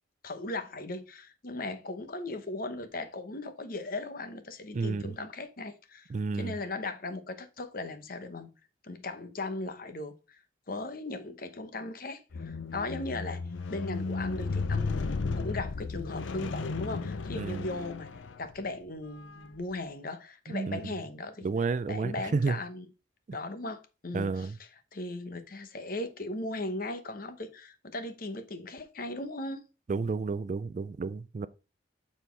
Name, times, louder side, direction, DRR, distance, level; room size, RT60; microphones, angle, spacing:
voice 1, 0.2-8.5 8.8-10.4 10.7-15.0 15.4-18.1 18.4-21.5 21.9-22.8 23.3-24.5 24.9-29.6, left 2 dB, 50° left, 0.9 m, -38 dB
voice 2, 4.7-5.1 6.1-6.6 17.3-17.6 20.5-20.9 21.4-22.6 24.1-24.6 29.9-31.5, right 4 dB, 40° right, 0.3 m, -31 dB
Squeak, 12.3-18.7 19.4-19.6, left 4 dB, 85° left, 0.6 m, -34 dB
7.2 x 4.2 x 4.5 m
head